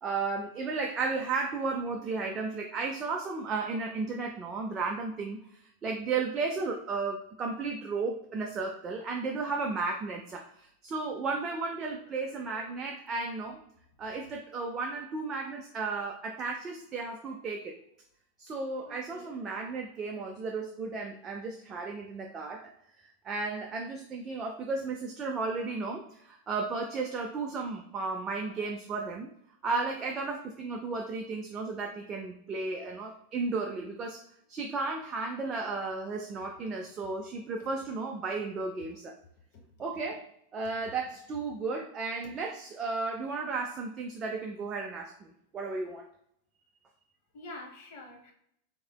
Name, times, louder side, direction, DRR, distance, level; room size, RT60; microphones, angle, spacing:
voice 1, 0.0-13.6 14.0-17.8 18.4-22.7 23.0-29.3 29.6-34.2 34.5-39.2 39.8-46.1, right 4 dB, 25° right, 2 dB, 0.4 m, -34 dB
voice 2, 12.1-12.7 18.9-19.3 28.6-28.7 37.6-37.7 39.5-39.6 47.3-48.3, left 2 dB, 50° left, 1 dB, 0.9 m, -48 dB
3.6 x 3.3 x 2.2 m, 0.72 s
figure-of-eight pair, 90°, 0 cm